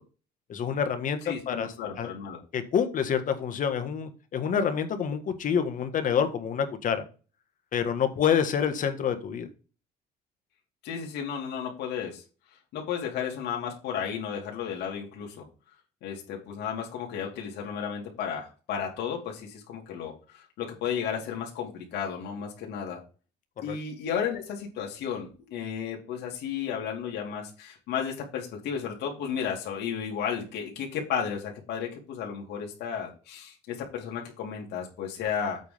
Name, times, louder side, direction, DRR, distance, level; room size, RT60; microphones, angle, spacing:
voice 1, 0.5-2.1 2.5-7.0 7.7-9.5 23.7-23.8, left 7 dB, 50° left, 8 dB, 1.6 m, -27 dB
voice 2, 1.2-2.4 10.8-12.2 12.7-15.4 16.0-23.0 23.6-35.6, left 7 dB, 80° left, 0 dB, 2.6 m, -33 dB
8.2 x 3.7 x 6.8 m, 0.35 s
cardioid pair, 110°, 17 cm